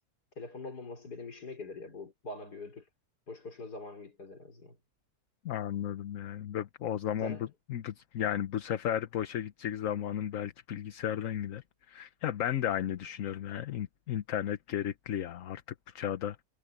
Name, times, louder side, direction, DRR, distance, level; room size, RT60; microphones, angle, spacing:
voice 1, 0.4-2.9 3.3-4.8 7.2-7.5, left 3 dB, 75° left, 4.8 m, -43 dB
voice 2, 5.4-7.4 7.7-15.6 15.9-16.4, left 10 dB, 60° left, 1.1 m, -34 dB
omnidirectional pair, 1.7 m